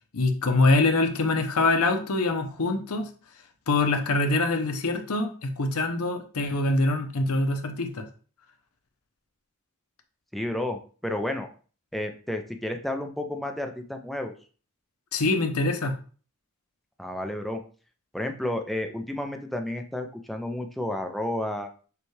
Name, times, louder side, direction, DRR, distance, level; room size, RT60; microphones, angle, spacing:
voice 1, 0.1-3.1 3.7-8.0 15.1-15.9, left 2 dB, 85° left, 6 dB, 0.7 m, -24 dB
voice 2, 10.3-11.5 11.9-14.3 17.0-17.6 18.1-21.7, left 1 dB, ahead, 4 dB, 0.4 m, -31 dB
6.9 x 2.3 x 3.2 m, 0.40 s
head